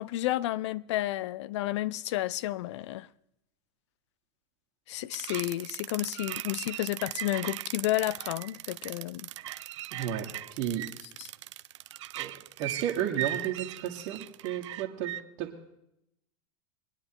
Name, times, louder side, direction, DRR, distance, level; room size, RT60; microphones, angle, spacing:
voice 1, 0.0-3.1 4.9-9.3 11.2-11.3, left 15 dB, 75° left, 0.5 m, -31 dB
sound 1, 5.1-15.2, right 13 dB, 85° right, 0.5 m, -38 dB
voice 2, 9.9-10.9 12.2-15.1 15.4-15.5, right 10 dB, 55° right, 1.6 m, -33 dB
23.5 x 9.8 x 2.9 m
supercardioid pair, 115°, 15 cm